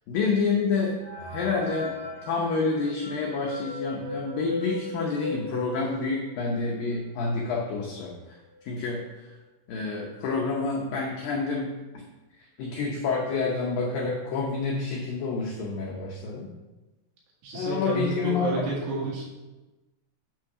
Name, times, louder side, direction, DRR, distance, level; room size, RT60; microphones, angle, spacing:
voice 1, 0.1-0.9 1.3-1.9 2.2-8.4 8.7-9.0 9.7-11.7 12.6-16.5 17.5-18.7, left 4 dB, 85° left, -2 dB, 2.0 m, -28 dB
sound 1, 1.0-6.4 6.9-7.0 7.2-7.3 8.1-8.2 8.5-8.9, left 2 dB, 25° right, 0.4 m, -37 dB
voice 2, 17.4-19.3, right 3 dB, 90° right, -4 dB, 4.4 m, -30 dB
8.9 x 3.6 x 5.9 m, 1.1 s
omnidirectional pair, 5.1 m